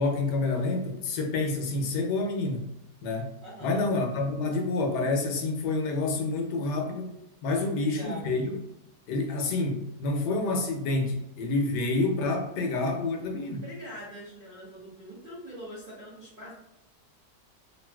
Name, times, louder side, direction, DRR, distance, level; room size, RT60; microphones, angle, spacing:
voice 1, 0.0-2.6 3.0-7.1 7.4-8.6 9.1-13.6, left 3 dB, 75° left, 2 dB, 1.1 m, -28 dB
voice 2, 3.4-3.8 7.6-8.3 13.6-16.6, equal, 70° right, -9 dB, 0.5 m, -43 dB
3.0 x 2.5 x 2.2 m, 0.84 s
omnidirectional pair, 1.9 m